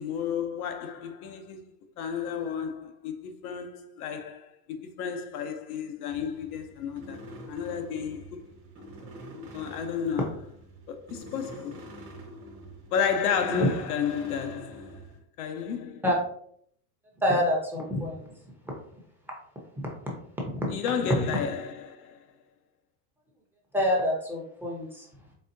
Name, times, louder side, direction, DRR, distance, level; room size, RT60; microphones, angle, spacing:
voice 1, 0.0-1.7 2.0-7.2 7.5-8.4 8.8-8.9 9.5-10.3 10.9-11.9 12.9-15.0 15.4-16.0 20.7-22.2, left 7 dB, 90° left, 0.8 m, -32 dB
sound 1, 6.1-15.2, right 1 dB, 30° right, 1.2 m, -45 dB
voice 2, 17.2-18.3 19.8-20.1 20.4-20.7 23.7-25.1, left 1 dB, 5° right, 0.7 m, -27 dB
4.1 x 3.6 x 2.6 m
supercardioid pair, 140°, 43 cm